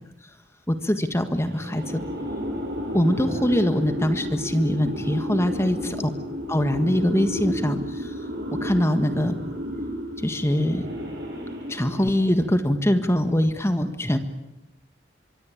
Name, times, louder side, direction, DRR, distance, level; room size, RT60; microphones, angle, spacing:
voice 1, 0.7-2.0 2.9-5.8 6.5-8.3 8.6-9.3 10.2-10.8 11.7-14.2, left 1 dB, 15° left, 9 dB, 1.6 m, -23 dB
sound 1, 1.4-12.6, equal, 60° right, 7.6 m, -32 dB
24.5 x 23.5 x 8.6 m, 0.92 s
head